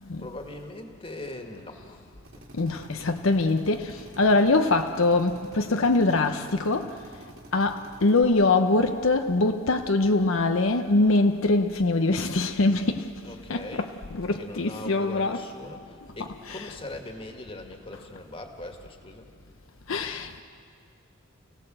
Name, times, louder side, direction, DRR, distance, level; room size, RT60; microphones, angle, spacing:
voice 1, 0.2-2.0 2.3-2.5 2.9-3.4 13.2-14.0 14.3-19.3, left 2 dB, 25° left, 2.0 m, -41 dB
Drill, 2.2-8.2, right 1 dB, 60° right, 3.4 m, -49 dB
voice 2, 2.5-7.2 7.5-15.4 16.2-16.8 19.9-20.4, left 2 dB, 70° left, 0.8 m, -24 dB
29.5 x 18.0 x 7.8 m
head